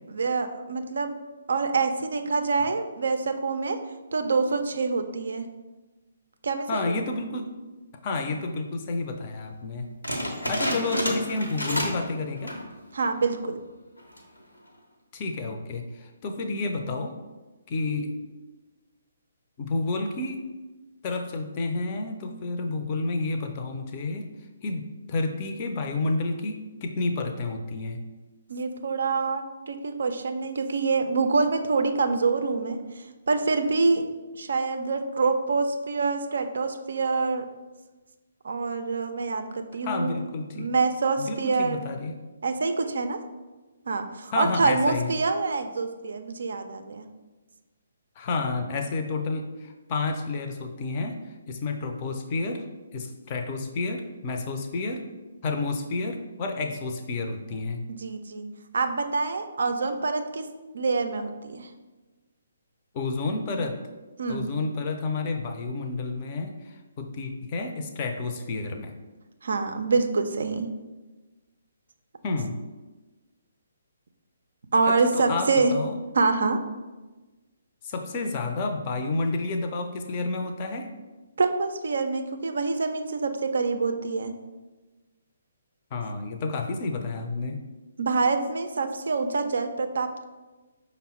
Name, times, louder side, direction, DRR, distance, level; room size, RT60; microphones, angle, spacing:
voice 1, 0.1-1.1 1.5-3.8 4.1-5.5 6.4-7.0 10.7-10.8 12.9-13.6 28.5-34.0 34.3-37.5 38.4-40.2 40.5-41.8 42.4-43.2 43.9-47.1 57.9-58.5 58.7-60.5 60.7-61.7 64.2-64.5 69.4-70.7 74.7-75.7 76.1-76.6 81.4-84.3 88.0-90.2, right 4 dB, 60° right, 7 dB, 0.4 m, -26 dB
voice 2, 6.7-7.5 8.0-9.9 10.5-12.5 15.1-17.1 17.7-18.1 19.6-20.5 21.0-24.3 24.6-28.0 39.8-40.7 41.2-42.2 44.3-45.2 48.2-51.2 51.5-52.6 52.9-55.0 55.4-57.8 62.9-63.8 64.3-68.9 72.2-72.6 74.9-75.9 77.8-80.9 85.9-87.6, left 3 dB, 30° left, 5 dB, 0.5 m, -30 dB
sound 1, 10.0-12.1 12.4-12.7 13.2-13.3 14.0-14.4, equal, 80° left, 0.8 m, -29 dB
5.4 x 2.0 x 4.2 m, 1.2 s
figure-of-eight pair, 135°, 0 cm